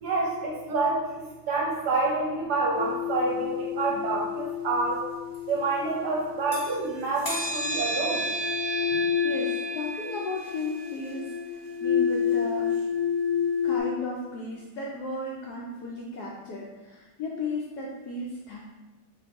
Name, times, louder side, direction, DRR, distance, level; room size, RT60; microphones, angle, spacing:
voice 1, 0.0-5.1 5.5-8.3, right 3 dB, 65° right, -3 dB, 1.1 m, -28 dB
sound 1, 2.7-6.7 7.2-13.8, left 6 dB, 25° left, 1.0 m, -29 dB
voice 2, 9.2-12.7 13.6-18.6, left 2 dB, 75° left, -3 dB, 0.9 m, -35 dB
3.7 x 3.2 x 3.5 m, 1.1 s
omnidirectional pair, 2.2 m